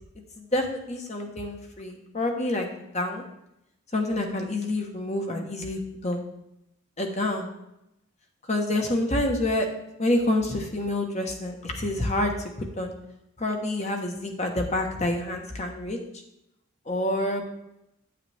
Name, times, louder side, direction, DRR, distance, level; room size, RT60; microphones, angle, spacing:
voice 1, 0.4-2.7 2.9-3.2 3.9-6.2 7.0-7.5 8.5-9.7 10.0-12.3 12.6-12.9 13.4-16.0 16.9-17.5, left 1 dB, 30° left, 3 dB, 1.3 m, -27 dB
9.2 x 9.0 x 3.5 m, 0.83 s
head